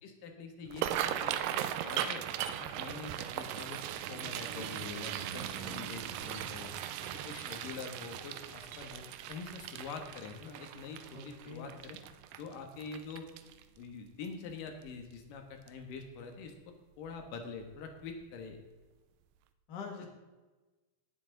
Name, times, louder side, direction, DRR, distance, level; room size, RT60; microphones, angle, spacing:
voice 1, 0.0-2.2 2.6-3.8 4.1-6.7 7.0-9.0 9.3-12.0 12.4-13.3 13.8-18.6, left 5 dB, 80° left, 4 dB, 3.0 m, -45 dB
sound 1, 0.7-13.8 14.3-14.5 14.9-15.3 15.7-15.8 17.1-17.3 17.6-17.7 18.2-18.3, right 11 dB, 90° right, 2.3 m, -38 dB
voice 2, 11.1-11.8 19.7-20.1, left 4 dB, 35° left, 1 dB, 2.1 m, -44 dB
18.5 x 8.0 x 3.8 m, 1.2 s
omnidirectional pair, 3.8 m